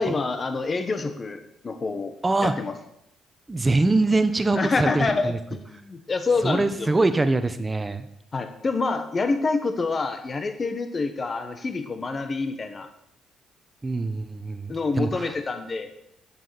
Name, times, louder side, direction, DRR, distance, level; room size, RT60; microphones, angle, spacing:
voice 1, 0.0-2.1 2.4-2.7 4.5-6.9 8.3-12.9 14.7-15.9, left 3 dB, 35° left, 8 dB, 1.4 m, -27 dB
voice 2, 2.2-2.5 3.5-5.4 6.4-8.1 13.8-15.3, right 2 dB, 20° right, 10 dB, 1.2 m, -23 dB
10.5 x 7.3 x 7.1 m, 0.76 s
cardioid pair, 90°, 0 cm